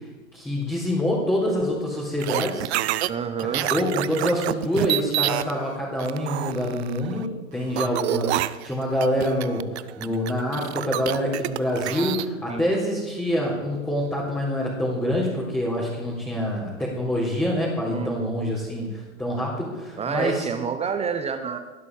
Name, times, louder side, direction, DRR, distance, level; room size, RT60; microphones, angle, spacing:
voice 1, 0.3-2.7 3.5-20.5, equal, 5° left, -6 dB, 4.0 m, -26 dB
sound 1, 2.2-3.1 3.4-5.5 6.0-7.2 7.8-12.3, right 15 dB, 55° right, 0.7 m, -27 dB
voice 2, 3.1-3.7 12.5-12.6 17.9-18.3 20.0-21.6, right 6 dB, 15° right, 9 dB, 0.8 m, -28 dB
19.0 x 11.0 x 4.9 m, 1.3 s
hypercardioid pair, 110°, 40 cm